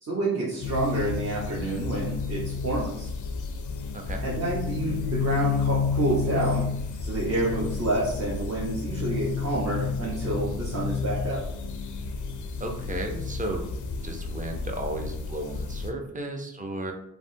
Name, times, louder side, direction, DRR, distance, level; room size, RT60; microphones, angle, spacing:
voice 1, 0.0-3.1 4.2-6.7 7.0-11.4, right 2 dB, 45° right, -7 dB, 1.0 m, -28 dB
sound 1, 0.6-15.9, left 5 dB, 60° left, 0.5 m, -31 dB
voice 2, 12.6-13.7 14.0-16.9, right 1 dB, 20° right, 3 dB, 0.6 m, -34 dB
3.3 x 2.1 x 2.7 m, 0.76 s
cardioid pair, 50°, 36 cm